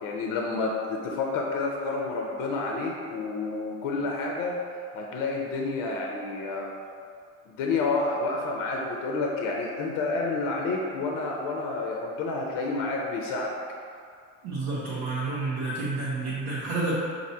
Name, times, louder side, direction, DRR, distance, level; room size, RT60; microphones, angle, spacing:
voice 1, 0.0-4.6 4.9-6.7 7.5-13.5, left 3 dB, 65° left, 0 dB, 0.7 m, -29 dB
voice 2, 14.4-16.9, right 3 dB, 80° right, -9 dB, 1.0 m, -30 dB
5.3 x 2.8 x 2.8 m, 2.2 s
supercardioid pair, 90°, 34 cm